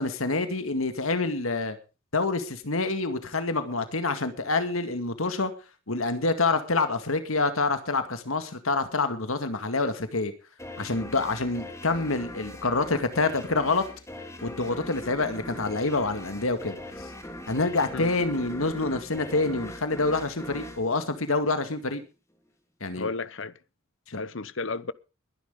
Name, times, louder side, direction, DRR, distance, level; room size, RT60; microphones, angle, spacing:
voice 1, 0.0-1.8 2.1-5.5 5.9-10.3 10.8-13.8 14.4-16.8 17.5-22.0 22.8-23.1 24.1-24.2, left 3 dB, 90° left, 2.1 m, -27 dB
sound 1, 10.6-21.9, left 1 dB, 15° left, 3.1 m, -41 dB
voice 2, 23.0-23.6 24.1-24.9, left 3 dB, 65° left, 1.0 m, -33 dB
21.5 x 11.0 x 3.8 m
head